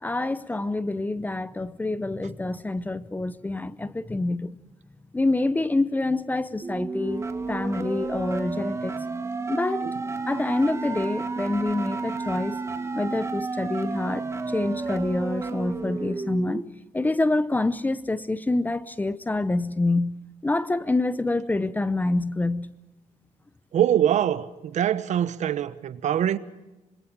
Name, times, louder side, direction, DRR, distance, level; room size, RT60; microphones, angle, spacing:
voice 1, 0.0-4.5 5.1-8.9 9.5-9.9 10.3-12.6 12.9-14.2 14.5-16.6 16.9-20.2 20.4-22.7, left 2 dB, 10° left, 0.7 m, -26 dB
sound 1, 6.6-16.6, right 3 dB, 20° right, 1.5 m, -31 dB
voice 2, 23.7-26.4, right 10 dB, 60° right, 1.1 m, -23 dB
26.0 x 21.0 x 6.1 m
cardioid pair, 145°, 14 cm